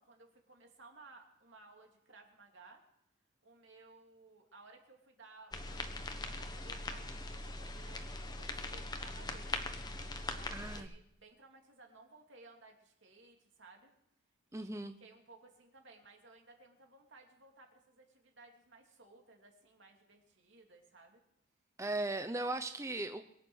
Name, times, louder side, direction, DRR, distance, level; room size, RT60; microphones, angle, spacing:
voice 1, 0.0-2.8 3.4-9.8 10.3-13.9 14.5-14.7 15.0-21.2, right 3 dB, 70° right, 2 dB, 2.9 m, -59 dB
sound 1, 5.5-10.8, left 2 dB, 20° left, 1.1 m, -41 dB
voice 2, 10.5-10.9 14.5-15.0 21.8-23.2, right 2 dB, 15° right, 8 dB, 0.6 m, -37 dB
22.5 x 8.9 x 6.4 m, 0.75 s
head